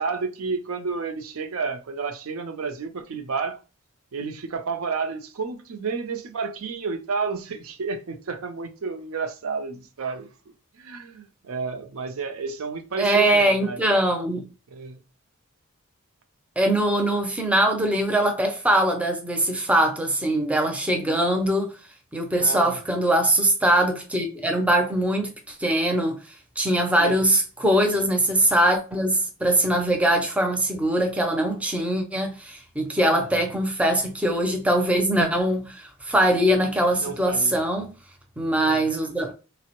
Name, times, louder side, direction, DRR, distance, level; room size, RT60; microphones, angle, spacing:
voice 1, 0.0-3.6 4.1-10.3 10.7-13.8 14.7-15.0 22.4-22.8 27.0-27.3 33.0-33.2 37.0-37.6 38.6-38.9, right 4 dB, 80° right, 0.5 m, -31 dB
voice 2, 13.0-14.4 16.6-21.7 22.1-26.2 26.6-37.9 38.4-39.3, right 1 dB, 5° right, 0.4 m, -22 dB
3.3 x 2.0 x 2.9 m
head